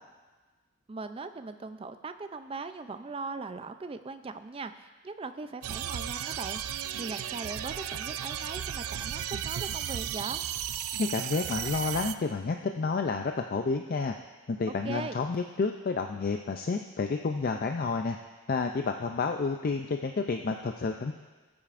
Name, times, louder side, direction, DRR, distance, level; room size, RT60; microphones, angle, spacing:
voice 1, 0.9-10.4 14.7-15.2, right 4 dB, 25° right, 10 dB, 0.4 m, -39 dB
sound 1, 5.6-12.2, right 10 dB, 85° right, 0.4 m, -35 dB
voice 2, 11.0-14.1 14.5-18.2 18.5-21.1, left 4 dB, 45° left, 5 dB, 0.4 m, -30 dB
17.5 x 8.7 x 2.5 m, 1.3 s
head